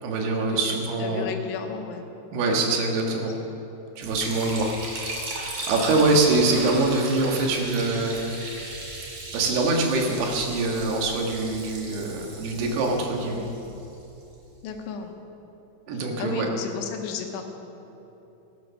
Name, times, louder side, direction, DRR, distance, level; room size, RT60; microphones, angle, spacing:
voice 1, 0.0-1.2 2.3-3.3 4.0-4.7 5.4-8.2 9.3-13.4 15.9-16.5, right 3 dB, 70° right, 1 dB, 3.4 m, -24 dB
voice 2, 1.0-2.1 3.1-3.3 13.2-13.5 14.6-15.2 15.9-17.5, left 6 dB, 85° left, 4 dB, 3.4 m, -34 dB
Liquid, 4.0-14.2, right 2 dB, 40° right, 2.2 m, -37 dB
16.5 x 9.1 x 6.6 m, 3.0 s
omnidirectional pair, 5.3 m